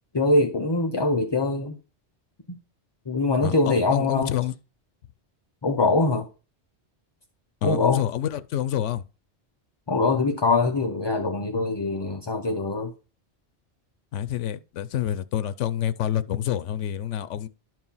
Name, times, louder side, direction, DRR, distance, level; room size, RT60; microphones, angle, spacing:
voice 1, 0.1-1.7 3.1-4.3 5.6-6.3 7.6-8.0 9.9-12.9, left 3 dB, 30° left, 0.6 m, -23 dB
voice 2, 3.4-4.5 7.6-9.0 14.1-17.5, left 10 dB, 85° left, 1.0 m, -27 dB
11.5 x 4.6 x 5.5 m
omnidirectional pair, 1.2 m